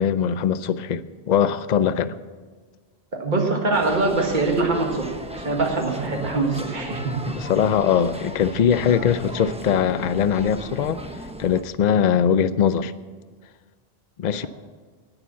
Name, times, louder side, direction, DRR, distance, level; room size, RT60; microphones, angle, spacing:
voice 1, 0.0-2.1 7.3-11.0 11.4-12.9 14.2-14.5, left 8 dB, 50° left, 0.6 m, -21 dB
voice 2, 3.2-5.1 5.3-7.3 8.9-9.1, right 3 dB, 50° right, 1.9 m, -23 dB
sound 1, 3.7-11.6, equal, 5° right, 0.8 m, -36 dB
18.0 x 6.9 x 7.0 m
omnidirectional pair, 1.0 m